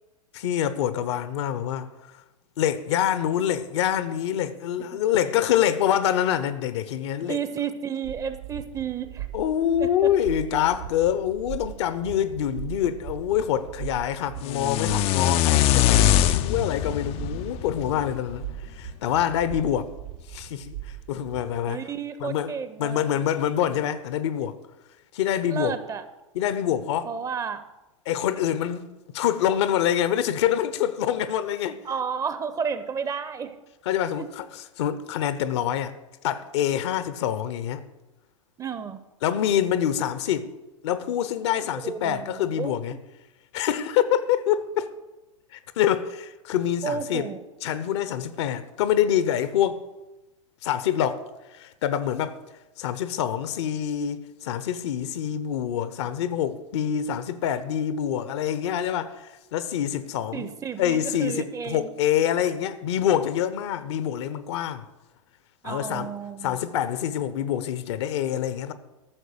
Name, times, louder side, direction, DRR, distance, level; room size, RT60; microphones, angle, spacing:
voice 1, 0.3-1.9 2.6-7.4 9.3-18.4 18.7-19.9 20.3-20.7 21.1-21.8 22.2-24.6 25.1-25.7 26.3-27.1 28.1-31.8 33.8-35.9 36.2-37.8 39.2-40.5 40.8-42.9 43.5-44.9 45.5-47.3 47.6-49.8 50.6-51.2 51.5-52.4 52.8-60.5 60.8-64.8 65.6-66.1 66.4-68.7, left 10 dB, 55° left, 0.9 m, -26 dB
voice 2, 7.2-9.3 9.8-10.1 21.7-23.1 25.5-26.0 27.0-27.6 31.8-33.6 34.2-34.3 38.6-39.0 41.6-43.0 46.8-47.4 60.3-61.9 65.6-66.6, right 7 dB, 20° right, 0.8 m, -32 dB
sound 1, 8.0-21.6, right 12 dB, 60° right, 1.1 m, -39 dB
sound 2, 14.4-18.5, left 12 dB, 35° left, 0.5 m, -22 dB
13.5 x 6.7 x 6.7 m
figure-of-eight pair, 100°, 17 cm